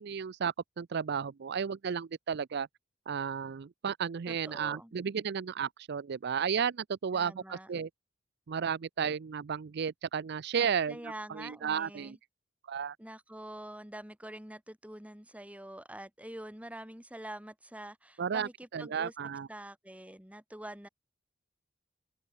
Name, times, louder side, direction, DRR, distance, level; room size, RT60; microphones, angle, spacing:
voice 1, 0.0-2.7 3.1-7.9 8.5-12.2 12.7-13.0 18.2-19.5, right 7 dB, 60° right, 0.5 m, -33 dB
voice 2, 4.3-4.9 7.1-7.7 10.9-12.2 13.0-19.1 19.5-20.9, right 1 dB, 5° right, 2.8 m, -46 dB
open air
head